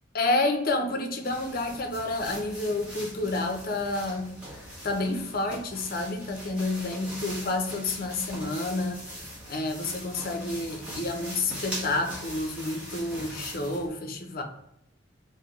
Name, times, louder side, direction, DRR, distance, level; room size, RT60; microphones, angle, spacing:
voice 1, 0.1-4.3 4.8-9.0 9.5-14.4, left 2 dB, 50° left, 4 dB, 0.6 m, -29 dB
sound 1, 1.2-13.9, equal, 5° right, 1.0 m, -41 dB
3.4 x 2.6 x 3.5 m, 0.79 s
head